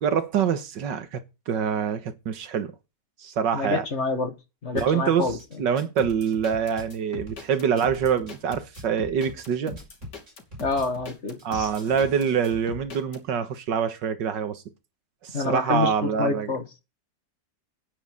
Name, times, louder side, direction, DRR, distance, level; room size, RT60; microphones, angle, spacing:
voice 1, 0.0-2.7 3.2-3.9 4.7-5.3 5.6-9.8 11.4-14.6 15.2-16.5, right 7 dB, 90° right, 2.0 m, -25 dB
voice 2, 3.5-4.3 4.6-5.4 10.6-11.7 15.3-16.6, left 4 dB, 40° left, 2.1 m, -27 dB
Drum kit / Bass drum, 4.8-4.9 5.3-6.9 7.3-8.9 9.3-10.9 11.4-12.7, right 1 dB, 40° right, 5.4 m, -43 dB
sound 1, 6.0-13.2, left 4 dB, 75° left, 3.4 m, -41 dB
9.9 x 9.8 x 5.5 m
omnidirectional pair, 1.9 m